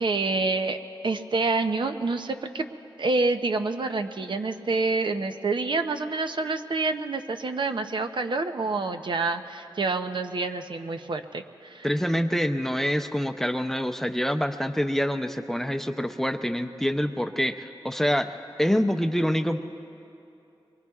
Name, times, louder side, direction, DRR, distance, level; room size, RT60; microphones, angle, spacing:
voice 1, 0.0-2.7 3.0-11.9, right 3 dB, 60° right, 7 dB, 0.7 m, -27 dB
voice 2, 11.8-19.6, equal, 5° left, 8 dB, 0.6 m, -26 dB
24.0 x 23.0 x 2.4 m, 2.7 s
wide cardioid pair, 70°, 9 cm